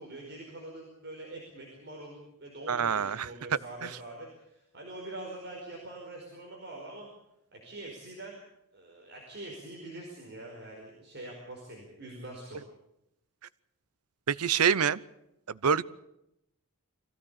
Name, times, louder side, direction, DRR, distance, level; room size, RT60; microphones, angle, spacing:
voice 1, 0.0-7.1 7.5-8.4 8.7-12.6, right 2 dB, 50° right, -2 dB, 5.0 m, -44 dB
voice 2, 2.7-3.3 3.8-3.9 14.3-15.0 15.5-15.8, right 7 dB, 90° right, 19 dB, 0.7 m, -26 dB
23.5 x 16.0 x 8.4 m, 0.84 s
head